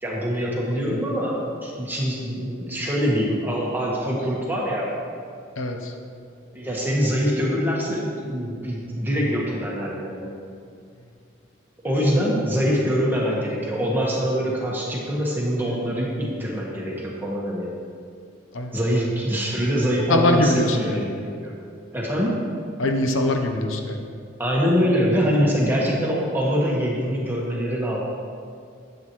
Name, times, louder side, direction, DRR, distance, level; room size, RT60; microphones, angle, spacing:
voice 1, 0.0-4.9 6.5-10.4 11.8-17.7 18.7-21.5 21.9-22.4 24.4-28.0, equal, 10° right, -4 dB, 1.4 m, -24 dB
voice 2, 5.6-5.9 18.5-18.7 20.1-21.1 22.8-24.1, left 1 dB, 75° left, 4 dB, 0.8 m, -22 dB
11.0 x 8.0 x 3.1 m, 2.3 s
head